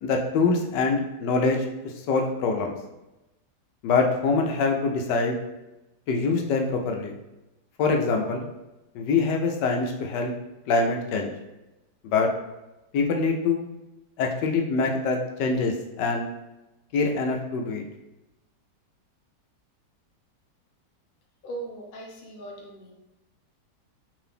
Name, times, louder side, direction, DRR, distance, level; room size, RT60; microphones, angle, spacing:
voice 1, 0.0-1.6 2.1-2.8 3.8-5.4 6.1-7.1 7.8-8.5 8.9-10.3 10.7-11.3 12.0-12.3 12.9-13.6 14.2-16.3 16.9-17.8, left 4 dB, 80° left, 2 dB, 1.2 m, -24 dB
voice 2, 21.4-22.9, right 2 dB, 60° left, -1 dB, 0.5 m, -39 dB
3.7 x 2.6 x 3.4 m, 0.98 s
omnidirectional pair, 1.9 m